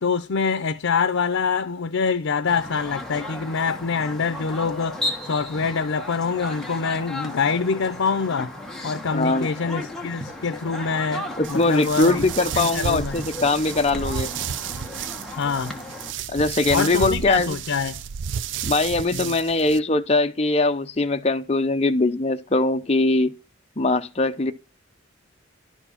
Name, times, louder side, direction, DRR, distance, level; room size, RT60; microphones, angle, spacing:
voice 1, 0.0-8.5 8.8-12.3 12.5-13.2 15.3-15.8 16.7-18.0 19.1-19.4, left 5 dB, 85° left, 0.6 m, -25 dB
sound 1, 2.5-16.1, left 1 dB, ahead, 1.3 m, -35 dB
voice 2, 9.1-9.5 11.4-14.3 16.3-17.6 18.6-23.3 23.8-24.5, left 2 dB, 30° left, 0.7 m, -21 dB
sound 2, 11.4-19.8, right 8 dB, 65° right, 0.4 m, -32 dB
11.5 x 4.6 x 5.7 m
head